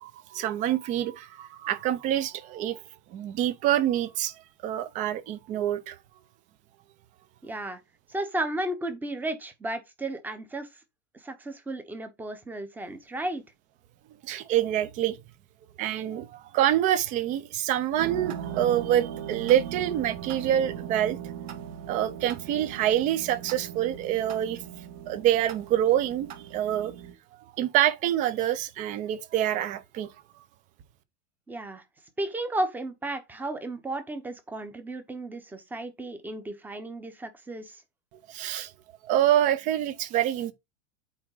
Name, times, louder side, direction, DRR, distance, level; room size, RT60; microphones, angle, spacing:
voice 1, 0.0-2.8 3.1-4.3 4.6-6.0 14.2-15.2 15.8-21.3 21.9-24.6 25.1-26.9 27.6-30.1 38.3-38.7 39.1-40.5, right 11 dB, 20° right, 0.5 m, -26 dB
voice 2, 7.4-7.8 8.1-10.7 11.2-13.4 31.5-31.8 32.2-37.8, right 1 dB, 5° right, 0.8 m, -34 dB
sound 1, 18.0-27.1, right 9 dB, 50° right, 1.7 m, -39 dB
8.7 x 3.5 x 4.7 m
supercardioid pair, 165°, 39 cm